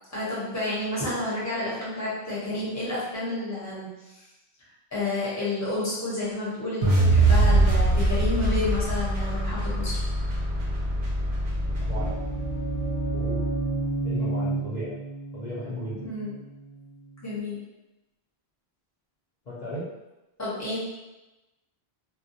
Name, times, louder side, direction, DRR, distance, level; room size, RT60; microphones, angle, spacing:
voice 1, 0.1-4.2 4.9-10.0 16.1-16.3 17.2-17.6 20.4-20.8, left 2 dB, 20° left, -8 dB, 0.8 m, -30 dB
sound 1, 6.8-13.0, right 2 dB, 60° right, 0.7 m, -23 dB
sound 2, 11.5-17.3, right 3 dB, 35° right, 0.9 m, -31 dB
voice 2, 11.8-12.1 13.1-13.6 14.0-14.9 15.3-16.0 19.5-19.9, equal, 50° left, -11 dB, 0.6 m, -35 dB
2.3 x 2.1 x 2.6 m, 1.0 s
omnidirectional pair, 1.1 m